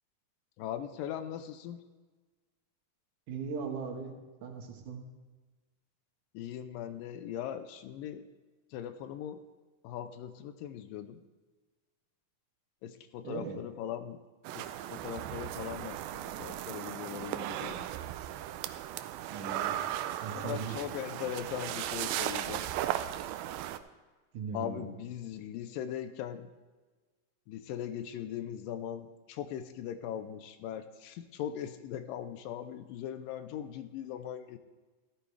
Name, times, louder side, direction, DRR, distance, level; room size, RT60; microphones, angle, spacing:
voice 1, 0.6-1.8 6.3-8.3 8.7-9.4 9.8-11.2 12.8-14.2 14.6-17.9 20.3-22.7 24.5-26.5 27.5-34.6, left 10 dB, 80° left, 10 dB, 2.2 m, -40 dB
voice 2, 3.3-4.1 4.4-5.0 13.2-13.6 19.3-19.7 20.2-20.8 24.3-24.9, right 5 dB, 65° right, 3 dB, 2.7 m, -38 dB
sound 1, 14.4-23.8, right 12 dB, 85° right, 2.3 m, -36 dB
14.0 x 13.5 x 3.3 m, 1.3 s
omnidirectional pair, 4.1 m